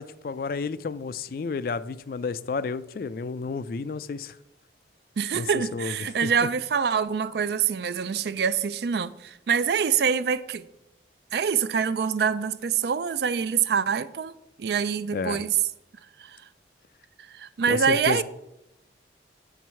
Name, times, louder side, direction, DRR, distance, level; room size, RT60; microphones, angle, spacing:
voice 1, 0.0-4.4 5.3-6.5 15.1-15.4 17.7-18.2, left 4 dB, 50° left, 0.3 m, -31 dB
voice 2, 5.2-10.7 11.3-14.3 14.6-15.6 16.2-16.4 17.2-18.2, right 6 dB, 60° right, 0.4 m, -25 dB
8.4 x 4.6 x 5.6 m
head